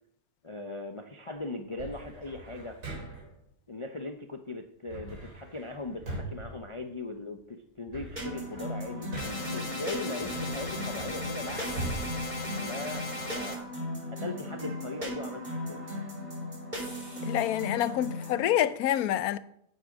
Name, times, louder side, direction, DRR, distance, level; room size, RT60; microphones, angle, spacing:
voice 1, 0.4-2.8 3.7-11.8 12.6-13.0 13.3-13.7 14.1-15.8, left 2 dB, 40° left, 0.4 m, -39 dB
sound 1, 1.8-3.4 4.9-7.3 7.7-9.6 10.2-13.2, right 2 dB, 80° right, 3.9 m, -42 dB
sound 2, 8.2-18.4, left 1 dB, 25° right, 3.5 m, -37 dB
sound 3, 9.2-13.6, left 1 dB, 25° left, 1.0 m, -38 dB
voice 2, 17.2-19.4, left 12 dB, 75° left, 1.1 m, -27 dB
9.6 x 7.7 x 5.1 m
omnidirectional pair, 1.6 m